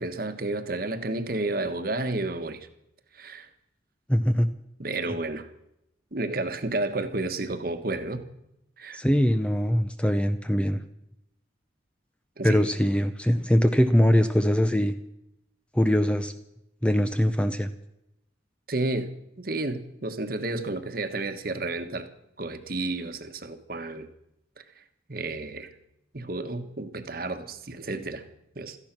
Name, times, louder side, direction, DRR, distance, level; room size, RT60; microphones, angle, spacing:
voice 1, 0.0-2.7 3.1-3.5 4.8-5.5 6.1-8.2 8.8-9.0 12.4-12.6 18.7-19.1 19.4-22.1 22.4-24.1 24.6-24.7 25.1-25.7 26.1-28.2 28.5-28.8, right 2 dB, 50° right, 9 dB, 1.3 m, -31 dB
voice 2, 4.1-4.5 8.9-10.8 12.4-14.9 15.7-16.3 16.8-17.7, equal, 5° left, 9 dB, 0.6 m, -22 dB
17.0 x 14.0 x 6.0 m, 0.82 s
head